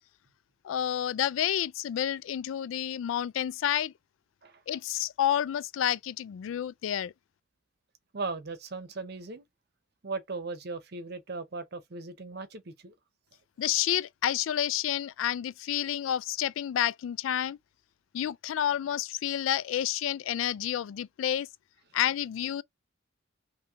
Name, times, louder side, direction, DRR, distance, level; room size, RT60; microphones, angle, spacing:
voice 1, 0.6-3.9 4.7-7.1 13.6-17.6 18.1-21.5 21.9-22.6, left 10 dB, 80° left, 0.3 m, -29 dB
voice 2, 4.4-4.8 8.1-9.4 10.0-12.9, right 3 dB, 55° right, 0.7 m, -38 dB
2.9 x 2.7 x 3.5 m
head